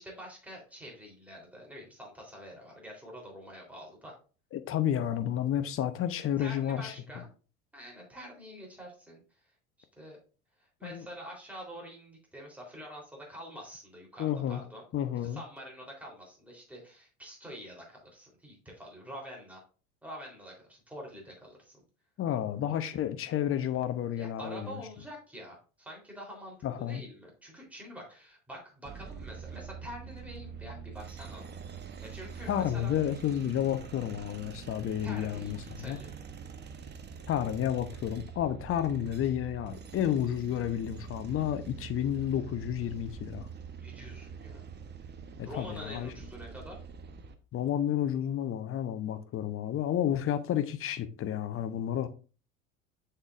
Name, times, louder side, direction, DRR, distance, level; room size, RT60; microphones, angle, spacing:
voice 1, 0.0-4.2 6.4-7.3 7.7-9.4 10.0-10.2 10.6-14.8 15.2-19.6 20.0-21.8 24.2-31.4 32.0-32.9 35.0-36.1 43.8-44.7 45.5-46.8, equal, 5° right, 3.6 m, -46 dB
voice 2, 4.5-6.9 10.8-11.1 14.2-14.6 14.9-15.4 22.2-24.8 26.6-27.0 32.5-36.0 37.3-43.5 45.4-46.1 47.5-52.1, left 10 dB, 30° left, 0.8 m, -31 dB
sound 1, 28.8-47.3, right 6 dB, 25° right, 0.9 m, -45 dB
7.2 x 6.7 x 2.5 m
figure-of-eight pair, 65°, 42 cm